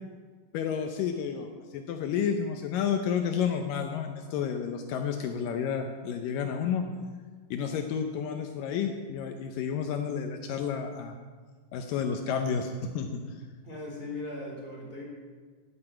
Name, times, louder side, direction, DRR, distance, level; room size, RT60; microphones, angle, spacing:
voice 1, 0.5-1.5 1.7-6.8 7.5-11.1 11.7-13.1, left 7 dB, 80° left, 5 dB, 2.4 m, -30 dB
voice 2, 13.6-15.0, left 2 dB, 15° left, -2 dB, 3.7 m, -38 dB
9.8 x 9.7 x 9.0 m, 1.5 s
omnidirectional pair, 4.0 m